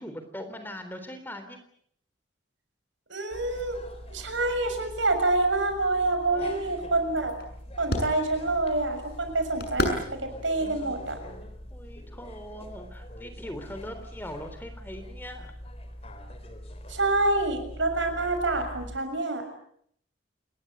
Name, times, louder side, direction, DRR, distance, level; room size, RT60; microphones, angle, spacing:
voice 1, 0.0-1.6 6.3-6.7 11.7-15.5, equal, 10° left, 8 dB, 3.8 m, -41 dB
voice 2, 3.1-3.8 4.1-7.4 7.8-11.2 16.9-19.5, right 2 dB, 85° right, 7 dB, 6.6 m, -27 dB
sound 1, 3.3-19.0, equal, 30° left, 4.1 m, -44 dB
sound 2, 5.7-12.0, left 1 dB, 55° left, 7.1 m, -36 dB
28.5 x 21.5 x 8.1 m, 0.67 s
head